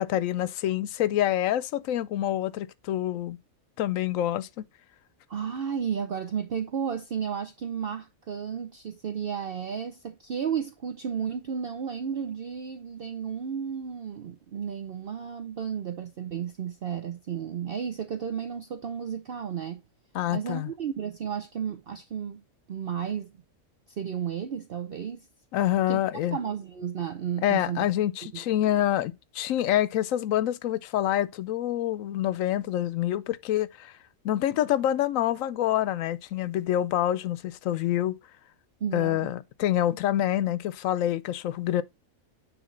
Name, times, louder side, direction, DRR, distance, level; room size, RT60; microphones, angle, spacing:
voice 1, 0.0-3.4 3.8-4.6 20.1-20.7 25.5-26.4 27.4-33.9 34.2-38.2 38.9-41.8, left 12 dB, 80° left, 1.0 m, -26 dB
voice 2, 5.3-19.8 20.3-22.4 22.7-23.3 23.9-25.3 25.9-26.0 26.3-27.8 28.3-28.4 38.8-39.3, right 7 dB, 55° right, 0.8 m, -33 dB
9.5 x 3.3 x 3.8 m
omnidirectional pair, 1.4 m